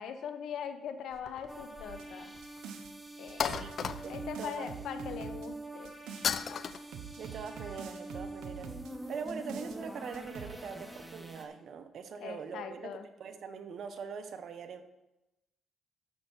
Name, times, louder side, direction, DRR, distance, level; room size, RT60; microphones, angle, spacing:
voice 1, 0.0-2.3 3.2-3.4 4.1-5.9 12.2-13.0, left 8 dB, 75° left, 8 dB, 1.0 m, -41 dB
sound 1, 1.2-2.1 2.4-2.5 3.4-4.4 6.2-6.8, left 7 dB, 55° left, 0.5 m, -34 dB
sound 2, 1.5-11.4, right 1 dB, 10° right, 1.5 m, -45 dB
sound 3, 1.9-2.9 3.3-6.3 6.7-8.9 9.3-9.8 10.1-10.6, right 8 dB, 85° right, 0.9 m, -46 dB
voice 2, 3.4-3.8 4.0-4.7 7.2-8.7 9.1-12.9 13.2-14.8, right 6 dB, 65° right, 9 dB, 1.0 m, -42 dB
12.0 x 6.9 x 4.6 m, 0.95 s
cardioid pair, 90°, 0 cm